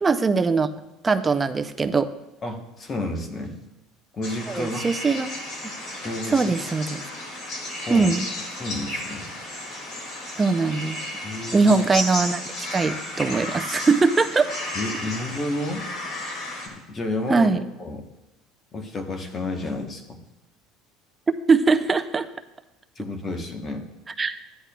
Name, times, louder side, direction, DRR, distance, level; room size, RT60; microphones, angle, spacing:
voice 1, 0.0-0.7 1.0-2.1 4.5-5.3 6.3-7.0 7.9-8.3 10.4-11.0 11.5-14.5 17.3-17.7 21.5-22.3 24.2-24.4, right 4 dB, 15° right, 9 dB, 0.4 m, -21 dB
voice 2, 2.4-3.6 4.1-4.8 6.0-6.5 7.9-8.1 8.6-9.3 11.2-11.7 14.7-15.9 16.7-17.5 17.8-18.0 18.7-20.2 23.0-23.9, left 2 dB, 20° left, 5 dB, 0.9 m, -31 dB
sound 1, 4.2-16.7, left 1 dB, 45° left, 2.1 m, -33 dB
14.5 x 10.0 x 2.2 m, 0.97 s
cardioid pair, 165°, 0 cm